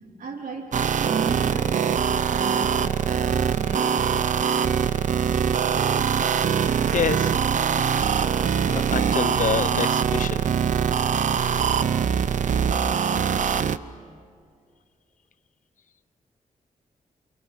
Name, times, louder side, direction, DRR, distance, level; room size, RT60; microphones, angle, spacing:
voice 1, 0.2-4.4, right 5 dB, 85° right, 2 dB, 3.1 m, -35 dB
sound 1, 0.7-13.8, right 7 dB, 65° right, 0.7 m, -23 dB
voice 2, 6.5-7.4 8.1-8.4 8.7-10.4, left 8 dB, 65° left, 14 dB, 0.8 m, -28 dB
28.5 x 27.5 x 7.5 m, 2.2 s
wide cardioid pair, 120°, 14 cm